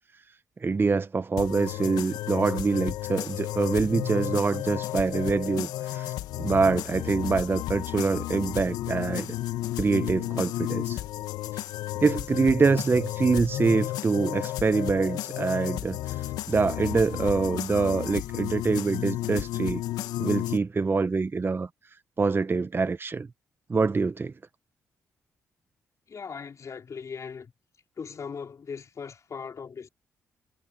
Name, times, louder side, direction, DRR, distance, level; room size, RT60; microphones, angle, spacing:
voice 1, 0.6-6.1 6.4-9.3 9.8-11.0 12.0-19.8 20.2-21.7 22.2-23.3 23.7-24.3, right 4 dB, 35° right, 0.9 m, -25 dB
sound 1, 1.4-20.6, left 15 dB, 80° left, 1.3 m, -33 dB
voice 2, 26.1-27.5 28.0-29.9, left 6 dB, 50° left, 3.9 m, -39 dB
supercardioid pair, 50°, 7 cm